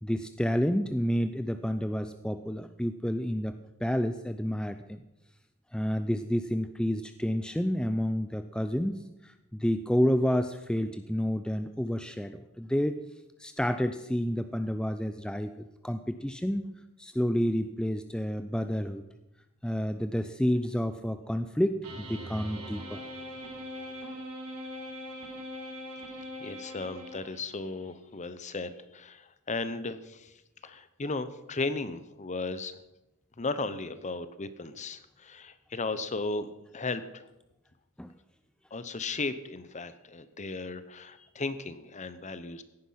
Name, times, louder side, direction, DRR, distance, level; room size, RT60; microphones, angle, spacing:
voice 1, 0.0-5.0 5.7-13.0 13.4-16.7 17.0-19.0 19.6-23.0 38.0-38.1, equal, 5° left, 9 dB, 0.5 m, -30 dB
sound 1, 21.8-27.6, equal, 85° right, 4.4 m, -41 dB
voice 2, 26.4-30.3 30.6-32.8 33.4-36.5 36.7-37.3 38.7-42.6, left 3 dB, 35° left, 13 dB, 0.9 m, -35 dB
16.5 x 10.0 x 5.7 m, 0.94 s
head